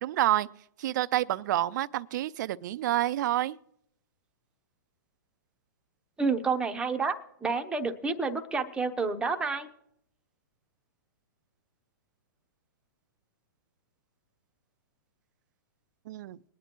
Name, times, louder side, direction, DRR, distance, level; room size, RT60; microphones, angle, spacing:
voice 1, 0.0-0.5 0.8-3.6 16.1-16.4, right 14 dB, 55° right, 0.4 m, -28 dB
voice 2, 6.2-7.2 7.4-9.7, right 4 dB, 10° right, 0.7 m, -29 dB
21.5 x 9.4 x 3.0 m
hypercardioid pair, 135°, 12 cm